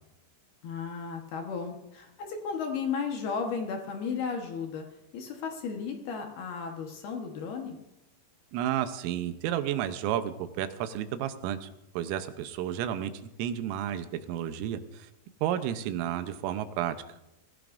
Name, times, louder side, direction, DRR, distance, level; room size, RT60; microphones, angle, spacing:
voice 1, 0.6-4.8 5.1-7.8, left 5 dB, 65° left, 2 dB, 2.8 m, -34 dB
voice 2, 8.5-11.7 12.0-13.1 13.4-15.1 15.4-17.0, right 11 dB, 90° right, 10 dB, 3.5 m, -31 dB
24.5 x 16.0 x 2.6 m, 0.91 s
omnidirectional pair, 5.7 m